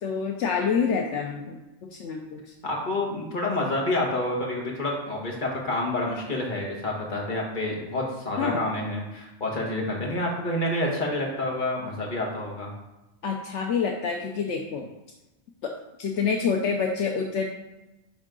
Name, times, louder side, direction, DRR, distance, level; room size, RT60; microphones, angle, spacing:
voice 1, 0.0-1.6 1.9-2.5 8.4-8.6 13.2-14.9 15.6-15.7 16.0-17.4, left 6 dB, 75° left, 1 dB, 1.0 m, -27 dB
voice 2, 2.6-12.7, left 1 dB, 40° left, -1 dB, 1.6 m, -28 dB
10.0 x 3.7 x 3.8 m, 1.0 s
omnidirectional pair, 1.3 m